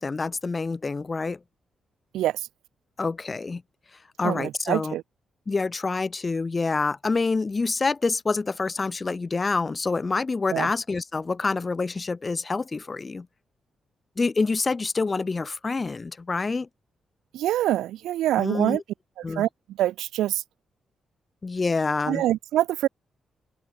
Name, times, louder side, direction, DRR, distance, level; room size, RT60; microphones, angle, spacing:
voice 1, 0.0-1.4 3.0-3.6 4.2-4.9 5.5-13.3 14.2-16.7 18.4-18.8 19.2-19.5 21.4-22.2, left 4 dB, 35° left, 3.0 m, -27 dB
voice 2, 2.1-2.5 4.2-5.0 10.5-10.7 17.3-18.8 19.3-20.4 22.1-22.9, right 13 dB, 80° right, 2.4 m, -25 dB
open air
hypercardioid pair, 45°, 0 cm